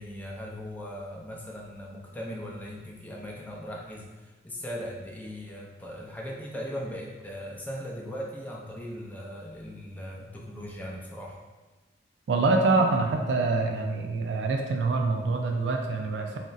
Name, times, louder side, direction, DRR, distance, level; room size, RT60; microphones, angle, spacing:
voice 1, 0.0-11.4, equal, 10° left, -2 dB, 0.4 m, -39 dB
voice 2, 12.3-16.4, right 3 dB, 75° right, 3 dB, 0.3 m, -25 dB
2.4 x 2.1 x 3.8 m, 1.2 s
head